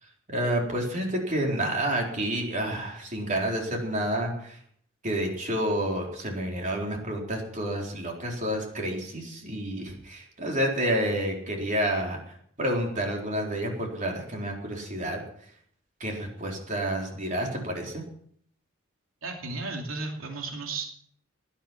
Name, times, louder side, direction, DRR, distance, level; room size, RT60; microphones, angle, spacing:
voice 1, 0.3-4.6 5.0-15.2 16.0-18.0, right 1 dB, 40° right, 0 dB, 3.9 m, -29 dB
voice 2, 19.2-20.9, right 3 dB, 75° right, 1 dB, 2.8 m, -34 dB
19.0 x 10.5 x 6.0 m, 0.63 s
head